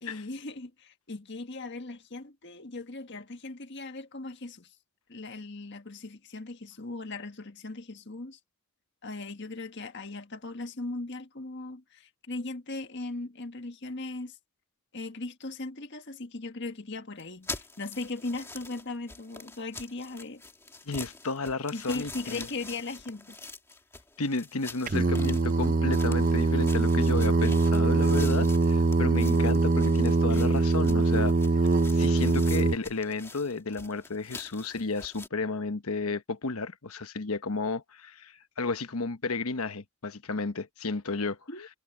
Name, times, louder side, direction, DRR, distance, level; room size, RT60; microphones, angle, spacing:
voice 1, 0.0-4.7 5.1-8.4 9.0-14.4 14.9-20.4 21.7-23.3 30.3-30.4 41.5-41.7, left 2 dB, 55° left, 1.7 m, -38 dB
sound 1, 17.2-35.3, left 3 dB, 10° left, 2.2 m, -45 dB
voice 2, 20.9-22.5 24.2-31.3 31.9-41.4, left 3 dB, 80° left, 1.1 m, -32 dB
Singing, 24.9-32.8, right 3 dB, 40° right, 0.6 m, -23 dB
head